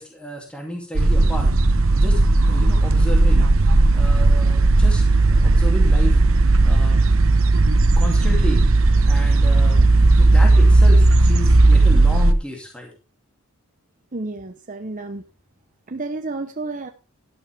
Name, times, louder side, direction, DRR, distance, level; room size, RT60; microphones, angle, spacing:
voice 1, 0.0-1.5 2.0-2.2 2.5-3.5 3.9-6.2 6.6-7.0 8.0-8.6 9.0-9.8 10.2-12.9, equal, 5° left, 0 dB, 2.6 m, -32 dB
sound 1, 1.0-12.3, right 2 dB, 65° right, 0.9 m, -15 dB
voice 2, 14.1-15.2 15.9-16.9, right 2 dB, 35° right, 6 dB, 0.8 m, -31 dB
12.0 x 12.0 x 3.4 m, 0.30 s
head